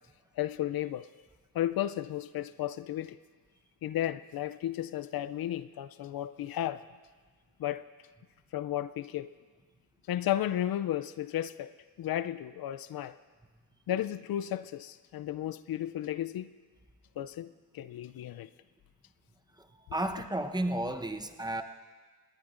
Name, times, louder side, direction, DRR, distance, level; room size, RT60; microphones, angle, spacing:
voice 1, 0.4-1.1 1.5-3.2 3.8-6.8 7.6-7.8 8.5-9.3 10.1-11.7 12.0-13.2 13.9-16.5 17.2-18.5, left 12 dB, 75° left, 14 dB, 0.5 m, -33 dB
voice 2, 19.6-21.6, right 1 dB, 10° right, 6 dB, 0.9 m, -33 dB
19.5 x 18.5 x 2.6 m, 1.5 s
cardioid pair, 65°, 36 cm